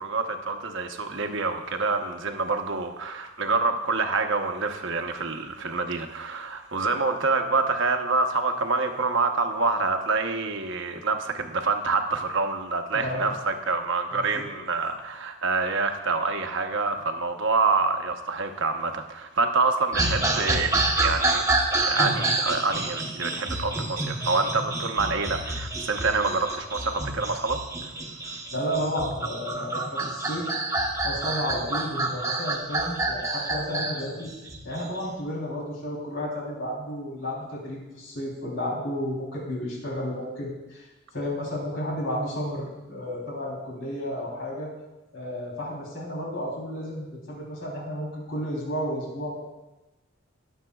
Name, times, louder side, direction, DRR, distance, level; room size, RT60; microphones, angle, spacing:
voice 1, 0.0-21.4 21.8-27.9 28.2-28.4, right 4 dB, 60° right, 5 dB, 0.9 m, -27 dB
voice 2, 12.9-13.4 14.1-14.5 28.5-30.5 31.0-34.3 34.6-40.8 41.1-44.7 45.1-49.4, equal, 65° left, -3 dB, 3.4 m, -32 dB
sound 1, 19.9-35.1, right 2 dB, 15° right, 1.0 m, -28 dB
20.5 x 7.3 x 2.3 m, 1.1 s
head